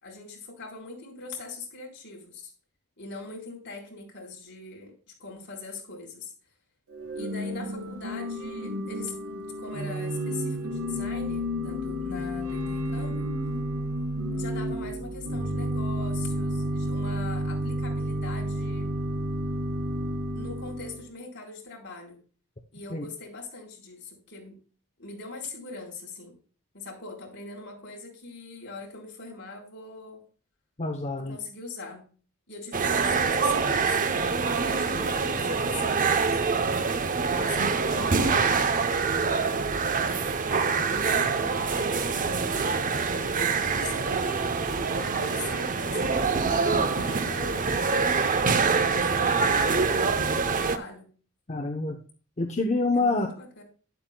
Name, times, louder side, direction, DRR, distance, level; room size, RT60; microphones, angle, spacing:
voice 1, 0.0-2.5 3.0-4.9 5.2-6.3 7.1-13.3 14.3-18.9 20.3-22.2 22.7-24.6 25.0-26.3 26.7-30.2 31.2-32.1 32.5-36.6 37.3-38.8 40.6-48.0 48.8-51.1 52.9-53.6, left 3 dB, 55° left, -1 dB, 4.3 m, -42 dB
Organ / Church bell, 6.9-21.1, equal, 80° right, 1.6 m, -31 dB
voice 2, 30.8-31.4 51.5-52.0 52.4-53.3, left 3 dB, 30° left, 2 dB, 0.9 m, -26 dB
sound 1, 32.7-50.8, right 5 dB, 40° right, 0.7 m, -25 dB
12.0 x 11.0 x 2.3 m, 0.39 s
head